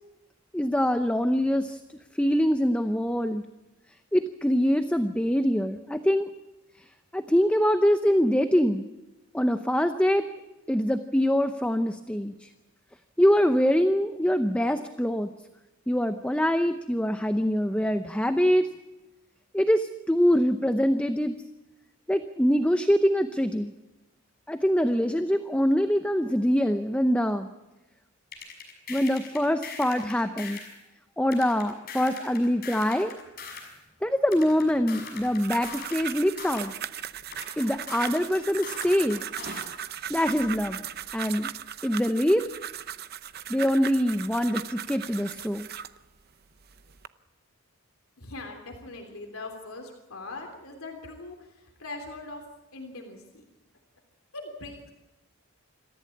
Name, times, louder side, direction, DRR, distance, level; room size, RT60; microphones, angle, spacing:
voice 1, 0.5-1.8 2.2-3.4 4.1-6.3 7.1-8.9 9.3-10.3 10.7-12.5 13.2-15.3 15.9-18.7 19.5-21.4 22.1-23.7 24.5-27.5 28.9-30.6 31.2-33.1 34.0-36.7 37.6-39.2 40.1-40.8 41.1-41.5 41.8-42.4 43.5-45.7, equal, 5° left, 8 dB, 0.7 m, -24 dB
sound 1, 28.3-30.8 31.3-33.8 34.3-36.8 37.3-39.8, left 5 dB, 45° left, 6.3 m, -41 dB
sound 2, 35.2-46.0 46.6-47.1, right 9 dB, 45° right, 0.7 m, -38 dB
voice 2, 48.2-52.4 52.7-53.4 54.3-54.9, left 2 dB, 75° left, 3 dB, 3.3 m, -41 dB
26.5 x 14.5 x 8.5 m, 1.1 s
head